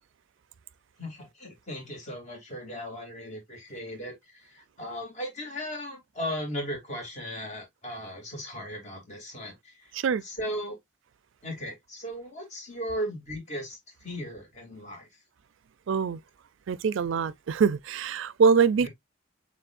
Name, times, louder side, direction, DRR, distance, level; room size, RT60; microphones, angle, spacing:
voice 1, 1.0-9.9 10.2-10.8 11.4-15.1 18.8-18.9, equal, 35° left, 2.6 m, -37 dB
voice 2, 15.9-16.2 16.7-18.9, right 5 dB, 75° right, 0.4 m, -24 dB
7.0 x 3.1 x 2.4 m
head